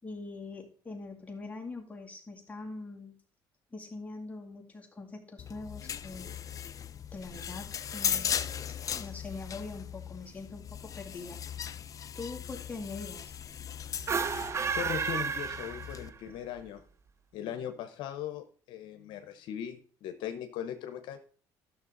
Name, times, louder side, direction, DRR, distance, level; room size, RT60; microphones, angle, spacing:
voice 1, 0.0-3.1 3.7-6.3 7.1-8.4 9.0-11.4 12.1-13.3, left 3 dB, 15° left, 1 dB, 2.2 m, -43 dB
sound 1, 5.4-16.1, left 8 dB, 45° left, 0.6 m, -38 dB
sound 2, 14.0-16.3, right 6 dB, 35° right, 0.7 m, -32 dB
voice 2, 14.7-16.8 17.3-21.2, left 9 dB, 75° left, 8 dB, 0.9 m, -39 dB
12.0 x 6.5 x 4.0 m, 0.43 s
cardioid pair, 95°, 8 cm